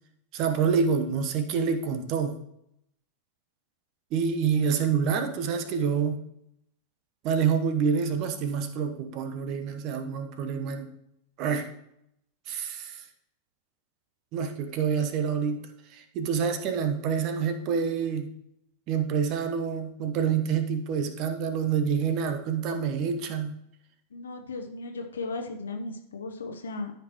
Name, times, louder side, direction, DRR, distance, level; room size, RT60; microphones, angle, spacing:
voice 1, 0.3-2.4 4.1-6.2 7.2-10.9 11.4-11.7 12.5-13.0 14.3-15.6 15.9-18.3 18.9-23.5, right 6 dB, 40° right, 8 dB, 1.1 m, -27 dB
voice 2, 24.1-26.9, left 3 dB, 70° left, 4 dB, 0.9 m, -36 dB
13.5 x 5.8 x 3.1 m, 0.78 s
figure-of-eight pair, 90°, 0 cm